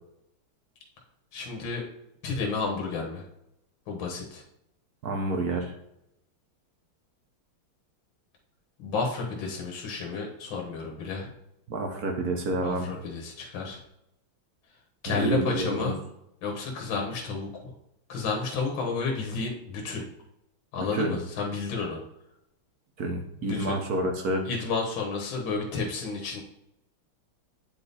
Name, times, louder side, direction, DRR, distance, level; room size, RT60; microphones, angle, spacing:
voice 1, 1.3-1.8 2.2-3.2 3.9-4.4 8.8-11.3 12.6-13.8 15.0-16.0 16.4-17.7 18.1-20.0 20.7-22.0 23.4-23.8 24.5-26.4, left 4 dB, 70° left, 0 dB, 2.0 m, -31 dB
voice 2, 5.0-5.8 11.7-12.9 15.1-15.9 20.9-21.2 23.0-24.4, right 2 dB, 55° right, 3 dB, 1.1 m, -29 dB
8.8 x 3.6 x 4.1 m, 0.83 s
omnidirectional pair, 2.3 m